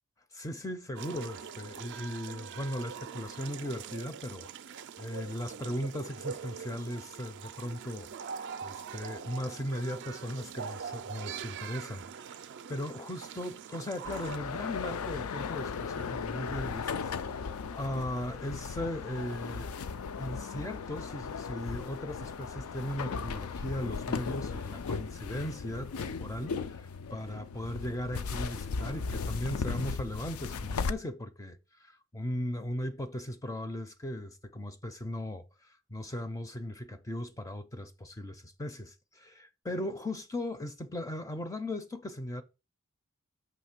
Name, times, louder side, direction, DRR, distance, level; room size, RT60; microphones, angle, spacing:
voice 1, 0.3-12.4 12.7-17.1 17.7-19.7 20.2-42.4, left 1 dB, 15° left, 0.4 m, -38 dB
sound 1, 1.0-14.4, right 7 dB, 55° right, 0.4 m, -43 dB
sound 2, 14.0-30.9, left 5 dB, 85° left, 0.4 m, -37 dB
6.4 x 3.0 x 5.8 m
head